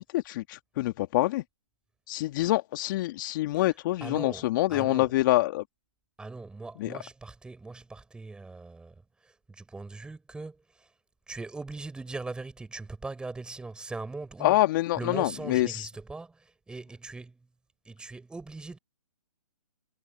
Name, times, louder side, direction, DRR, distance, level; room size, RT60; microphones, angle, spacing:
voice 1, 0.0-1.4 2.1-5.6 6.8-6.9 14.4-15.9, left 17 dB, 35° left, 1.8 m, -26 dB
voice 2, 4.0-5.1 6.2-10.9 11.3-14.6 15.0-17.5 17.8-18.8, right 3 dB, 5° right, 4.5 m, -40 dB
hypercardioid pair, 140°, 18 cm